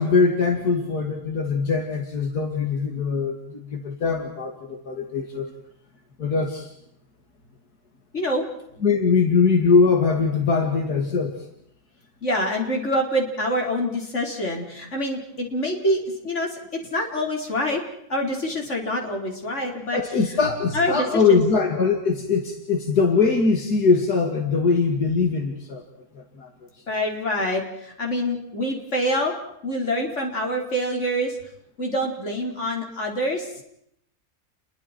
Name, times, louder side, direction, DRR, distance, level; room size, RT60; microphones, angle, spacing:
voice 1, 0.0-5.5 6.2-6.7 8.8-11.4 19.9-25.8 26.1-26.5, left 4 dB, 80° left, 3 dB, 2.9 m, -22 dB
voice 2, 12.2-16.6 16.9-17.8 18.1-20.0 20.7-21.4 26.9-29.3 29.6-31.4 31.8-33.6, equal, 45° left, 1 dB, 4.7 m, -26 dB
30.0 x 22.5 x 4.5 m, 0.73 s
omnidirectional pair, 1.7 m